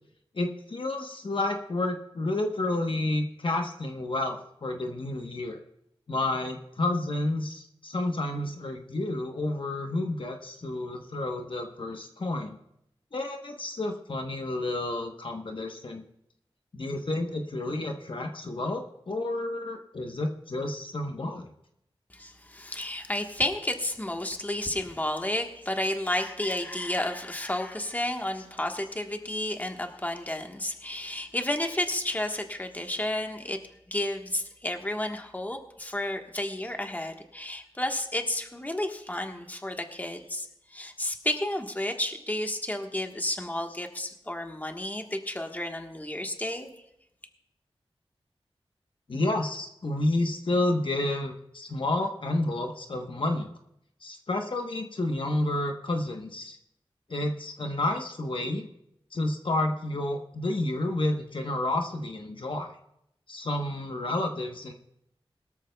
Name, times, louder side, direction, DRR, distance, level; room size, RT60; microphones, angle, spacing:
voice 1, 0.3-5.6 6.1-12.6 13.1-16.0 16.7-21.5 49.1-53.5 54.0-56.6 57.1-58.7 59.1-62.8 63.3-64.7, left 2 dB, 55° left, 3 dB, 1.1 m, -30 dB
voice 2, 22.1-33.6 33.9-46.7, left 1 dB, 15° left, 4 dB, 1.3 m, -31 dB
21.5 x 13.5 x 2.3 m, 0.79 s
wide cardioid pair, 80°, 10 cm